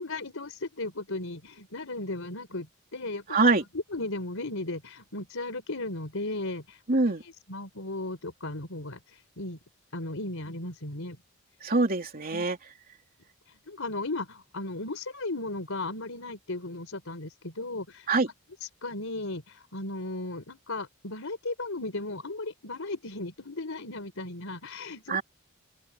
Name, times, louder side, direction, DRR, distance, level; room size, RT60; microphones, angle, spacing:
voice 1, 0.0-2.7 2.9-3.4 3.9-6.8 7.5-9.6 9.9-11.2 12.3-12.5 13.5-18.1 18.8-25.2, left 2 dB, 70° left, 4.4 m, -36 dB
voice 2, 3.3-3.6 6.9-7.2 11.6-12.6 18.1-18.3 25.1-25.2, right 3 dB, 45° right, 3.1 m, -24 dB
open air
head